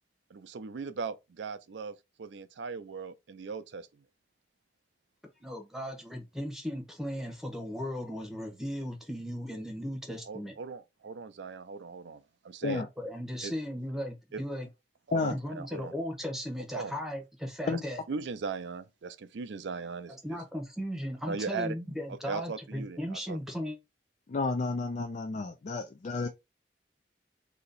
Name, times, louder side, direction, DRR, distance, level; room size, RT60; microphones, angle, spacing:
voice 1, 0.3-4.0 10.3-12.8 13.4-13.5 14.3-14.4 15.1-15.9 16.7-16.9 17.7-17.8 18.1-20.4 21.3-21.7 22.3-23.0 23.3-23.4, right 4 dB, 80° right, 0.5 m, -38 dB
voice 2, 5.4-10.5 12.6-14.7 15.3-18.0 20.1-23.8, equal, ahead, 0.9 m, -37 dB
voice 3, 24.3-26.3, left 3 dB, 40° left, 0.4 m, -31 dB
2.9 x 2.8 x 4.0 m
head